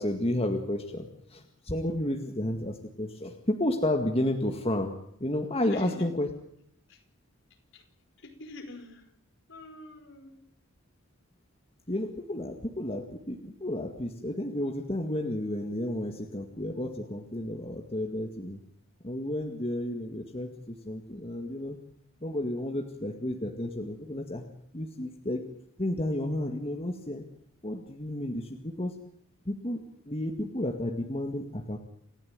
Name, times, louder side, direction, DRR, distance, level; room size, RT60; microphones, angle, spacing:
voice 1, 0.0-4.9 5.2-6.3 11.9-18.6 19.0-21.8 22.2-24.4 24.7-25.5 25.8-27.2 27.6-29.0 29.5-31.8, left 1 dB, 25° left, 3 dB, 2.0 m, -32 dB
voice 2, 5.7-6.1 6.9-7.0 7.7-7.9 8.2-9.1 9.5-10.4, left 2 dB, 60° left, 4 dB, 5.1 m, -46 dB
28.5 x 15.5 x 9.1 m, 0.68 s
head